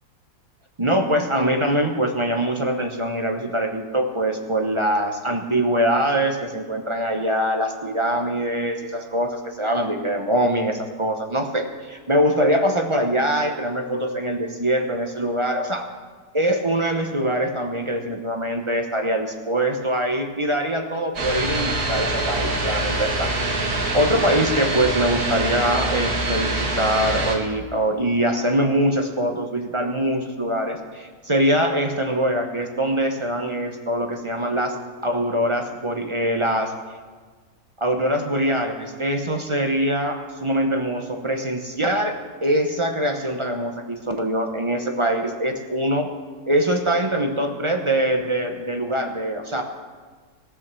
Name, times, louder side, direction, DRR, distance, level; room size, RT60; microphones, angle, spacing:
voice 1, 0.8-15.9 16.3-34.8 35.0-36.7 37.8-46.1 46.5-49.6, right 1 dB, 30° right, 4 dB, 0.6 m, -23 dB
sound 1, 21.2-27.3, right 2 dB, 65° right, 2.3 m, -24 dB
17.5 x 6.2 x 6.8 m, 1.4 s
omnidirectional pair, 1.7 m